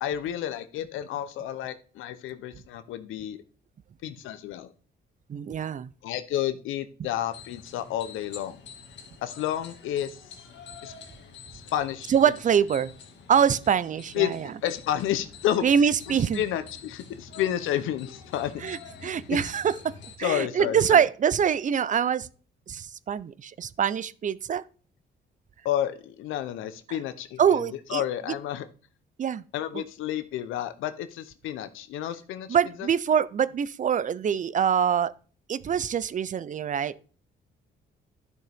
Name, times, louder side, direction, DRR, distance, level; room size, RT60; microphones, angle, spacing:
voice 1, 0.0-3.4 4.0-4.7 6.0-8.6 9.2-10.2 10.8-10.9 11.5-12.1 14.1-14.3 14.6-15.6 16.1-18.6 19.0-19.4 20.2-21.0 25.6-28.7 29.5-32.9, left 11 dB, 90° left, 0.7 m, -31 dB
voice 2, 5.3-5.9 12.1-12.9 13.3-14.4 15.6-16.4 18.6-19.9 20.2-22.3 22.7-24.6 27.4-28.0 29.2-29.4 29.7-29.8 32.5-35.1 35.5-37.0, right 8 dB, 40° right, 0.5 m, -24 dB
sound 1, 7.3-20.2, left 6 dB, 70° left, 1.6 m, -47 dB
11.0 x 6.3 x 3.5 m
cardioid pair, 90°, 20 cm